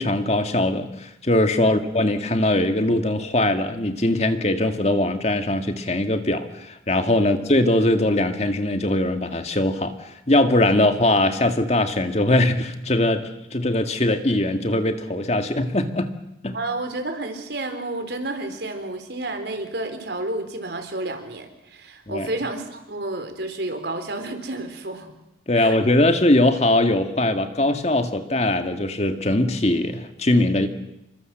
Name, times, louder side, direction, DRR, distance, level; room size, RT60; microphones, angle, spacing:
voice 1, 0.0-16.1 16.4-16.6 22.1-22.3 25.5-30.7, left 1 dB, 35° left, 7 dB, 1.9 m, -21 dB
voice 2, 16.5-25.1 25.5-25.7, right 2 dB, 70° right, 6 dB, 4.2 m, -31 dB
28.5 x 24.0 x 7.8 m, 0.88 s
head